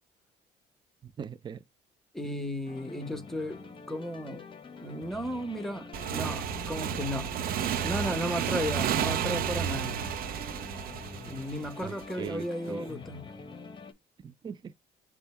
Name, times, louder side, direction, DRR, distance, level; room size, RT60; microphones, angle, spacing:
voice 1, 1.0-1.6 11.8-12.9 14.2-14.7, right 7 dB, 25° right, 0.4 m, -40 dB
voice 2, 2.1-3.6 3.9-4.4 4.8-7.3 7.8-9.9 11.3-13.3, equal, ahead, 1.1 m, -34 dB
sound 1, 2.7-13.9, left 4 dB, 30° left, 0.9 m, -46 dB
Motorcycle / Engine, 5.9-12.3, right 9 dB, 60° right, 0.7 m, -32 dB
5.3 x 2.3 x 4.3 m
cardioid pair, 110°, 17 cm